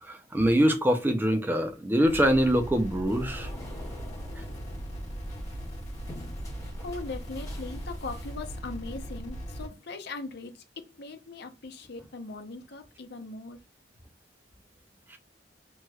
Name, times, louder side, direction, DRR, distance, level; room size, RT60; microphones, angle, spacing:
voice 1, 0.0-3.5 15.1-15.2, equal, 10° right, 0.4 m, -24 dB
sound 1, 2.0-9.7, equal, 40° left, 1.4 m, -38 dB
sound 2, 3.0-8.9, left 1 dB, 20° left, 1.3 m, -47 dB
voice 2, 6.8-13.6, left 3 dB, 60° left, 0.7 m, -40 dB
3.0 x 2.9 x 2.3 m
head